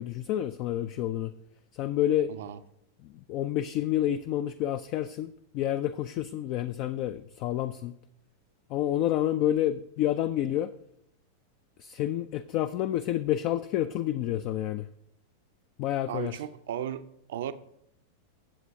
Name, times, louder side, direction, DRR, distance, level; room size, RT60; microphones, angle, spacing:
voice 1, 0.0-1.3 1.7-2.3 3.0-7.9 8.7-10.7 11.8-14.9 15.8-16.4, left 12 dB, 40° left, 0.4 m, -29 dB
voice 2, 2.3-2.6 16.1-17.0 17.3-17.5, right 10 dB, 55° right, 0.6 m, -35 dB
22.0 x 7.5 x 2.7 m
figure-of-eight pair, 90°, 0 cm